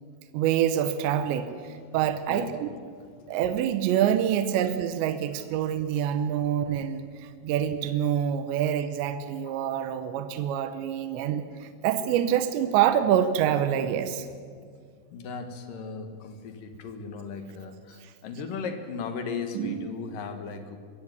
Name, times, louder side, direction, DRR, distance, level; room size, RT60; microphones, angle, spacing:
voice 1, 0.3-2.8 3.3-14.3 18.0-18.1 19.5-19.9, right 10 dB, 80° right, 10 dB, 3.2 m, -26 dB
voice 2, 15.1-20.8, left 5 dB, 60° left, 8 dB, 2.7 m, -36 dB
22.0 x 16.0 x 9.5 m, 2.1 s
omnidirectional pair, 5.1 m